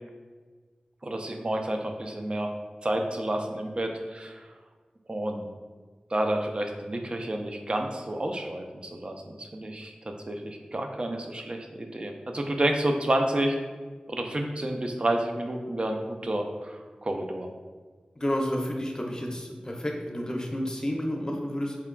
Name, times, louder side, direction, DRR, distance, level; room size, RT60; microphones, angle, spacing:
voice 1, 1.0-2.5 2.8-4.5 5.1-5.5 6.1-13.6 14.1-17.5, right 1 dB, 40° right, 4 dB, 0.4 m, -30 dB
voice 2, 18.2-21.8, equal, 25° left, 0 dB, 0.6 m, -30 dB
4.4 x 3.6 x 2.2 m, 1.4 s
wide cardioid pair, 80°, 3 cm